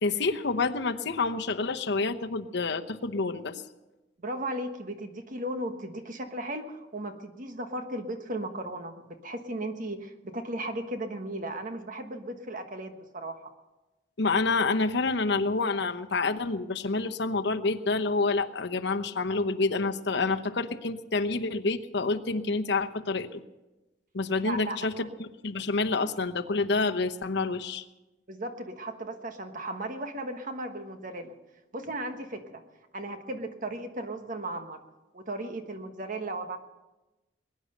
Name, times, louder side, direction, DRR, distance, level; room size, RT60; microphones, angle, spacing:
voice 1, 0.0-3.6 14.2-23.4 24.1-27.8, left 3 dB, 70° left, 6 dB, 0.9 m, -28 dB
voice 2, 4.2-13.4 24.4-25.1 28.3-31.3 31.7-32.6 32.9-34.8 35.1-36.6, right 1 dB, 45° right, 6 dB, 1.4 m, -36 dB
21.5 x 10.0 x 6.6 m, 1.1 s
head